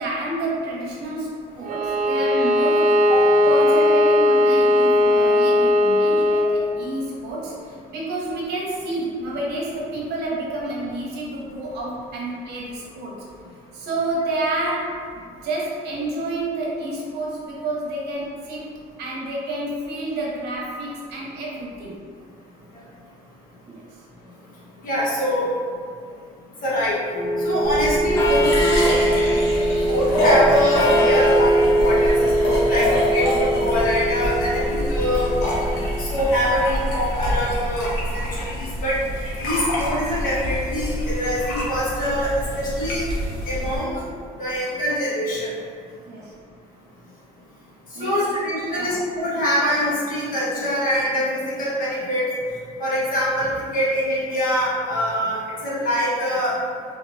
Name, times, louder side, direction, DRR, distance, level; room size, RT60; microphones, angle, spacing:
voice 1, 0.0-3.1 3.4-13.3 13.7-15.1 15.4-18.7 19.0-22.0 23.6-23.8 27.5-27.8 36.1-36.3 44.6-44.7 45.9-46.4 47.9-48.2 48.7-49.1, right 2 dB, 80° right, -4 dB, 0.9 m, -29 dB
Bowed string instrument, 1.6-6.6, left 1 dB, 50° right, 0.5 m, -17 dB
voice 2, 24.8-25.5 26.6-27.0 27.4-29.0 29.9-35.3 36.0-38.2 38.6-39.0 39.4-43.0 43.4-44.0 44.4-45.5 48.0-52.3 52.8-56.5, equal, 55° left, -8 dB, 1.5 m, -24 dB
sound 1, 27.1-35.9, right 1 dB, 15° left, 0.5 m, -21 dB
sound 2, 27.6-43.8, equal, 80° left, 1.0 m, -26 dB
3.5 x 2.9 x 2.7 m, 2.1 s
cardioid pair, 110°, 17 cm